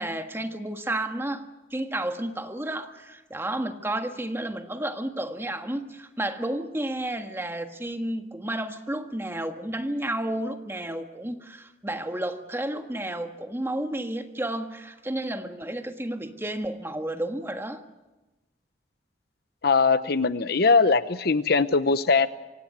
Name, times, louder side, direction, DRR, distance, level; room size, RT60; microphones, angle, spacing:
voice 1, 0.0-17.8, right 1 dB, 15° right, 6 dB, 1.5 m, -31 dB
voice 2, 19.6-22.3, left 4 dB, 60° left, 14 dB, 0.8 m, -21 dB
25.0 x 17.0 x 9.3 m, 1.1 s
head